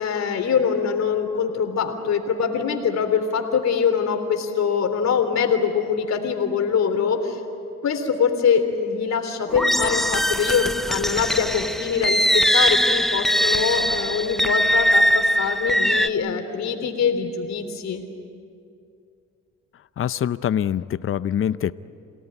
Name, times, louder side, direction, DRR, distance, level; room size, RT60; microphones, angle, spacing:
voice 1, 0.0-7.4 7.8-18.0, left 6 dB, 60° left, 5 dB, 3.5 m, -23 dB
sound 1, 9.5-16.1, equal, ahead, 0.6 m, -21 dB
voice 2, 20.0-21.7, left 9 dB, 45° left, 15 dB, 0.7 m, -24 dB
27.5 x 18.0 x 10.0 m, 2.5 s
cardioid pair, 90°, 30 cm